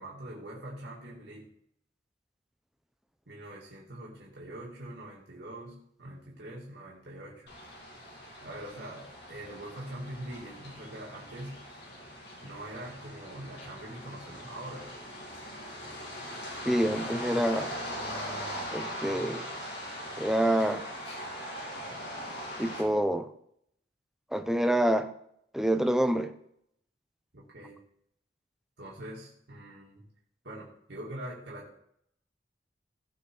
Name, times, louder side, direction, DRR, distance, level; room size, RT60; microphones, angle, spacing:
voice 1, 0.0-1.5 3.3-7.5 8.4-11.6 12.4-14.9 27.3-27.8 28.8-30.1 30.4-31.8, right 1 dB, 65° right, -5 dB, 2.5 m, -43 dB
sound 1, 7.5-22.8, equal, 65° left, 2.4 m, -41 dB
voice 2, 16.6-17.8 18.7-19.5 20.2-20.8 22.6-23.3 24.3-25.1 25.5-26.3, right 1 dB, ahead, 8 dB, 0.7 m, -27 dB
16.5 x 5.7 x 4.8 m, 0.71 s
head